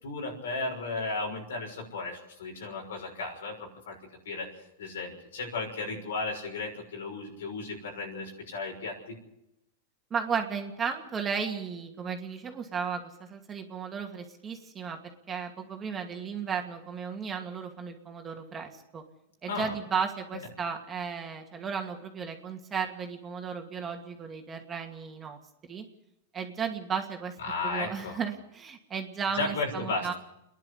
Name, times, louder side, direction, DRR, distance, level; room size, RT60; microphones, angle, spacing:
voice 1, 0.0-4.0 4.2-9.2 19.5-19.7 20.3-20.4 27.4-28.2 29.3-30.1, left 3 dB, 85° left, 2 dB, 6.3 m, -35 dB
voice 2, 10.1-19.0 19.4-25.4 25.7-25.9 26.3-27.4 27.6-30.1, right 6 dB, 20° right, 3 dB, 2.4 m, -34 dB
28.0 x 11.0 x 8.4 m, 0.85 s
hypercardioid pair, 130°, 0 cm